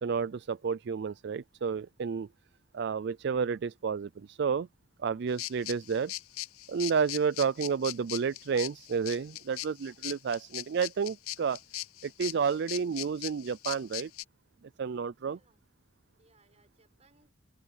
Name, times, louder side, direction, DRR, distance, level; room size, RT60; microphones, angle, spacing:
voice 1, 0.0-2.3 2.7-4.7 5.0-6.1 6.7-11.6 12.0-14.1 14.8-15.4, right 6 dB, 55° right, 0.4 m, -31 dB
sound 1, 5.4-14.2, left 16 dB, 85° left, 0.6 m, -40 dB
voice 2, 15.2-15.7 16.2-17.3, right 3 dB, 30° right, 6.4 m, -66 dB
head